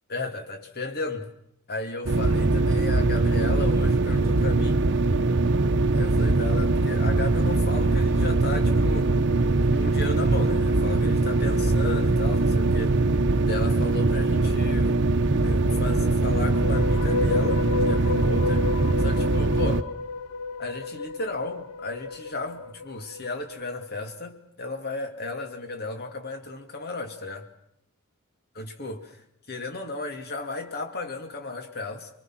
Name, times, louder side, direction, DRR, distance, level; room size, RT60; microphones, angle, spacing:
voice 1, 0.1-1.3 1.7-4.9 5.9-9.1 9.7-13.1 13.4-15.0 15.4-19.9 20.6-27.5 28.5-29.2 29.5-32.1, left 2 dB, 45° left, 2.6 m, -34 dB
sound 1, 2.1-19.8, right 2 dB, 55° right, 0.9 m, -22 dB
sound 2, 16.4-23.6, left 3 dB, 80° left, 0.8 m, -31 dB
25.5 x 23.0 x 6.1 m
head